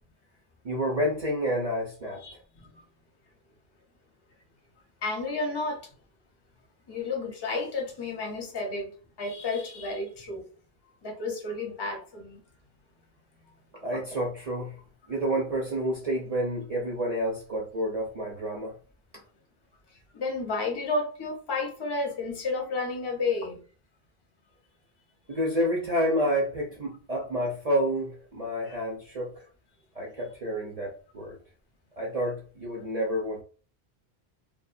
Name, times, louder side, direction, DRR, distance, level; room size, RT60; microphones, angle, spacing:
voice 1, 0.6-2.2 13.8-14.8 15.1-18.8 25.3-29.4 29.9-31.4 32.0-33.4, equal, 45° right, 0.5 m, -29 dB
voice 2, 2.2-2.8 5.0-5.9 6.9-8.9 9.2-10.5 11.0-12.4 20.1-23.6 28.7-28.8, left 3 dB, 30° left, 0.6 m, -31 dB
2.4 x 2.1 x 2.5 m
omnidirectional pair, 1.1 m